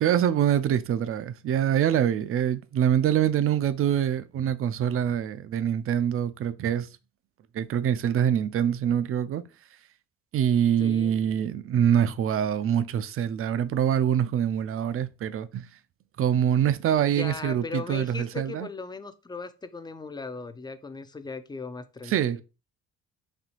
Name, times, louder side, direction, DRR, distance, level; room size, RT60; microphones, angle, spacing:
voice 1, 0.0-6.9 7.5-9.4 10.3-15.7 16.2-18.7 22.1-22.4, right 9 dB, 45° right, 0.4 m, -25 dB
voice 2, 10.8-11.2 17.1-22.4, left 4 dB, 15° left, 0.4 m, -38 dB
4.2 x 2.7 x 2.9 m
cardioid pair, 90°, 30 cm